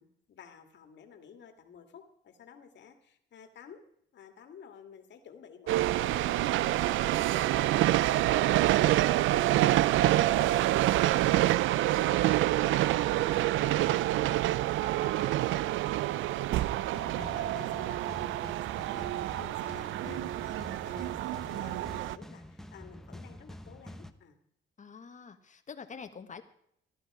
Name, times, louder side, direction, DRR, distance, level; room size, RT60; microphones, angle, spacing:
voice 1, 0.0-3.8 4.1-9.8 10.2-12.0 12.3-24.4, left 7 dB, 65° left, 5 dB, 2.2 m, -52 dB
sound 1, 5.7-22.2, right 15 dB, 80° right, 0.4 m, -27 dB
sound 2, 16.9-24.1, left 1 dB, ahead, 1.0 m, -47 dB
voice 2, 24.8-26.4, left 6 dB, 40° left, 9 dB, 1.4 m, -46 dB
15.0 x 12.0 x 4.9 m, 0.70 s
cardioid pair, 90°, 20 cm